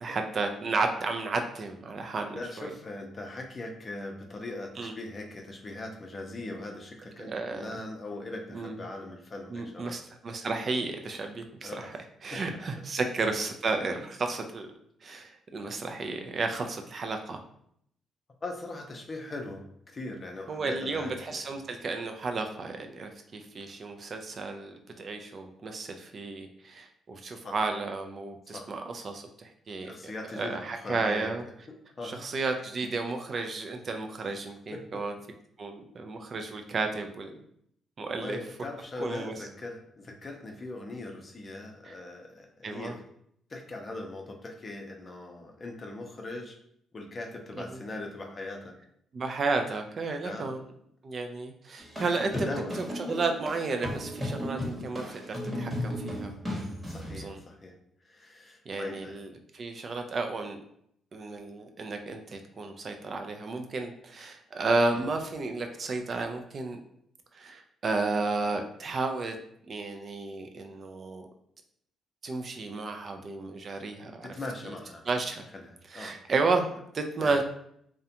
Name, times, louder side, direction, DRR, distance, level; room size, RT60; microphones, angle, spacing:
voice 1, 0.0-2.7 4.8-5.0 7.2-7.8 8.5-8.8 9.5-11.9 12.2-14.7 15.0-17.4 20.5-29.9 30.3-31.4 32.0-35.1 35.6-37.4 38.0-38.4 39.0-39.3 41.8-42.0 42.6-42.9 47.6-47.8 49.1-50.6 51.0-52.5 52.7-56.3 57.1-57.4 58.7-60.6 61.1-66.8 67.3-69.4 69.7-71.3 72.2-74.3 74.6-74.7 75.1-75.4 75.9-77.4, right 3 dB, 45° right, 5 dB, 0.3 m, -32 dB
voice 2, 2.3-10.0 11.6-12.0 12.3-12.4 14.0-14.1 18.4-21.1 21.5-21.6 27.4-27.6 28.5-28.7 29.8-31.3 32.0-32.2 34.7-35.0 38.0-42.9 43.5-46.6 46.9-48.7 50.2-50.5 51.9-52.8 56.9-57.7 58.0-59.1 64.9-65.0 74.3-75.1 75.5-76.2 77.2-77.3, left 2 dB, 35° left, 2 dB, 0.5 m, -40 dB
sound 1, 51.8-57.2, equal, 15° right, 0.9 m, -35 dB
2.4 x 2.1 x 2.7 m, 0.70 s
cardioid pair, 90°, 0 cm